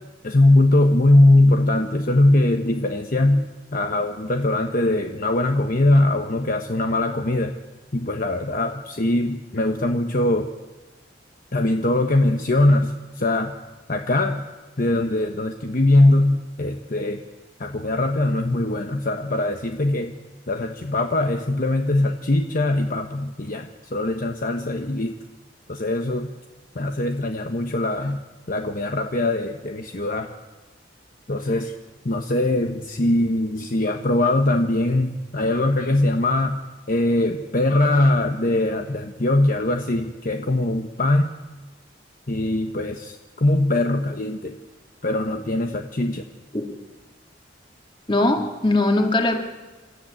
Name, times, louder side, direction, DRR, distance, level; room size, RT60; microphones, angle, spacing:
voice 1, 0.2-7.6 7.9-10.5 11.5-13.5 13.9-14.4 14.8-17.2 17.6-20.1 20.5-25.2 25.7-26.3 26.7-28.2 28.5-30.3 31.3-31.7 32.0-36.6 36.9-41.3 42.3-44.6 45.0-46.2, left 1 dB, 50° left, 5 dB, 1.1 m, -21 dB
voice 2, 48.1-49.4, left 2 dB, 25° left, 3 dB, 2.7 m, -20 dB
27.5 x 13.5 x 8.9 m, 1.3 s
head